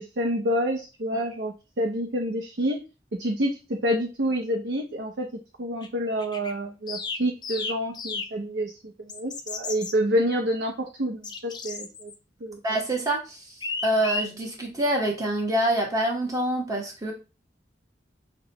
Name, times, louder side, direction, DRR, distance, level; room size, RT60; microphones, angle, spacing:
voice 1, 0.0-2.8 3.2-5.3 5.6-8.7 9.0-12.1 12.4-12.6, equal, 70° right, 0 dB, 0.6 m, -28 dB
sound 1, 5.8-5.9 6.2-6.5 6.9-8.3 9.1-9.9 11.2-12.1 13.6-14.3, left 4 dB, 25° left, 0.4 m, -33 dB
voice 2, 12.6-13.4 13.8-17.1, right 1 dB, 20° right, -1 dB, 1.1 m, -26 dB
5.9 x 2.2 x 2.9 m, 0.30 s
head